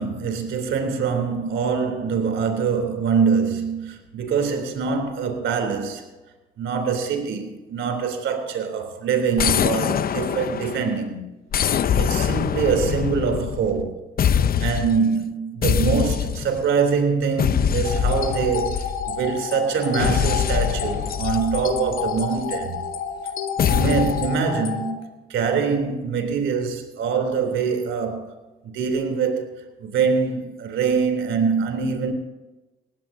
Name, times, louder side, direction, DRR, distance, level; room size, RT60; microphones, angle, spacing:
voice 1, 0.0-6.0 6.6-11.3 11.7-14.0 14.3-22.8 23.7-28.4 28.6-32.1, right 6 dB, 75° right, 3.2 m, -24 dB
sound 1, 9.4-11.0 11.5-13.9 14.2-15.0 15.6-16.7 17.4-19.3 20.0-22.4 23.6-24.3, left 8 dB, 50° left, 0.6 m, -23 dB
sound 2, 17.8-24.9, left 7 dB, 85° left, 2.0 m, -30 dB
19.5 x 16.0 x 2.7 m
cardioid pair, 90°, 20 cm